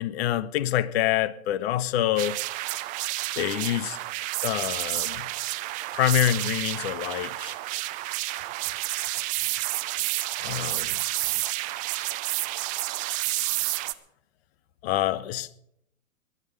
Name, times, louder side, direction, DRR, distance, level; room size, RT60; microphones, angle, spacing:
voice 1, 0.0-2.4 3.4-4.0 4.4-5.3 5.9-7.6 10.4-11.0 14.8-15.6, left 12 dB, 45° left, 0.9 m, -26 dB
sound 1, 2.2-13.9, right 18 dB, 20° right, 0.5 m, -30 dB
21.5 x 9.9 x 5.0 m
hypercardioid pair, 130°, 42 cm